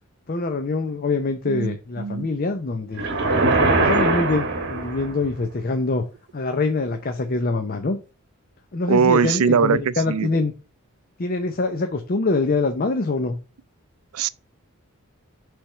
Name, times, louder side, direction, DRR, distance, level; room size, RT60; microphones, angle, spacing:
voice 1, 0.3-3.1 3.6-6.1 6.3-8.0 8.7-10.5 11.2-13.4, left 3 dB, 40° left, 0.6 m, -24 dB
voice 2, 1.5-2.3 8.9-9.8 10.1-10.3 14.1-14.3, right 6 dB, 85° right, 0.4 m, -20 dB
sound 1, 3.0-5.3, right 3 dB, 55° right, 1.2 m, -21 dB
5.9 x 3.5 x 5.4 m
head